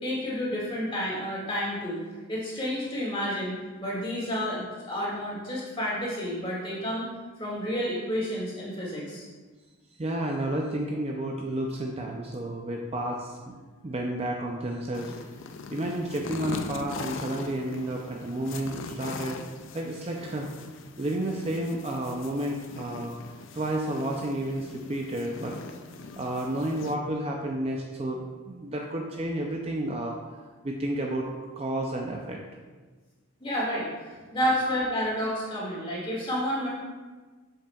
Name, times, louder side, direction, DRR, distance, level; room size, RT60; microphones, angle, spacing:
voice 1, 0.0-2.0 2.3-7.1 7.4-9.2 33.4-36.7, equal, 25° left, -6 dB, 2.1 m, -30 dB
voice 2, 10.0-13.5 13.8-15.1 15.7-19.4 19.7-20.5 21.0-23.1 23.5-25.5 26.2-30.2 30.6-31.3 31.6-32.4 34.6-34.7, right 1 dB, 30° right, 0 dB, 0.4 m, -31 dB
sound 1, 14.9-26.9, left 4 dB, 60° left, 0.4 m, -41 dB
7.5 x 7.3 x 2.4 m, 1.3 s
head